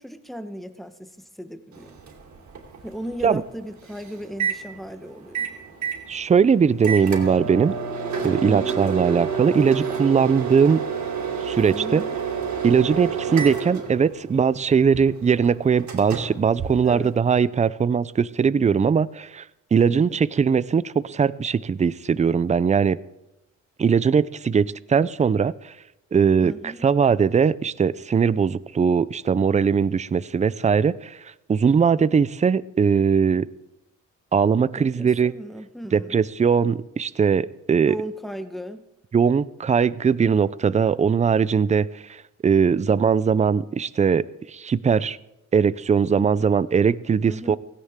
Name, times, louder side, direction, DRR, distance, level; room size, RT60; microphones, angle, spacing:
voice 1, 0.0-1.9 2.8-5.5 8.4-8.8 11.7-12.2 16.8-17.1 19.9-20.2 26.4-26.9 34.8-36.2 37.9-38.9 47.3-47.6, equal, ahead, 9 dB, 1.1 m, -36 dB
Microwave oven, 1.7-17.4, right 7 dB, 65° right, 2.9 m, -30 dB
voice 2, 6.1-7.7 8.2-10.9 11.4-12.0 12.6-19.4 19.7-23.0 23.8-25.7 26.1-33.5 34.3-35.3 35.9-37.9 39.1-45.2 45.5-47.6, right 6 dB, 25° right, 18 dB, 0.4 m, -20 dB
16.5 x 16.5 x 3.6 m, 0.91 s
cardioid pair, 100°, 31 cm